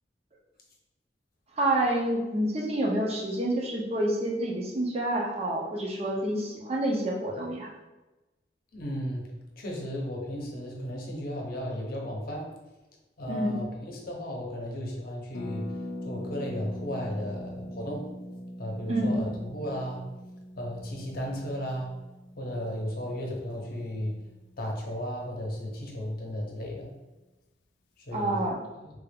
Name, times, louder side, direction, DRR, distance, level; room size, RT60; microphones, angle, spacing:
voice 1, 1.6-7.7 13.3-13.7 18.9-19.3 28.1-28.6, right 1 dB, 35° right, -1 dB, 0.6 m, -28 dB
voice 2, 8.7-9.3 9.6-12.5 13.2-15.6 16.0-18.0 18.6-20.0 20.6-21.9 22.4-24.2 24.6-26.9 28.1-28.4, equal, 55° left, -1 dB, 0.8 m, -34 dB
Harp, 15.3-25.0 25.2-25.3 25.5-25.8, left 1 dB, 90° left, 0.4 m, -42 dB
3.4 x 2.4 x 3.4 m, 1.1 s
head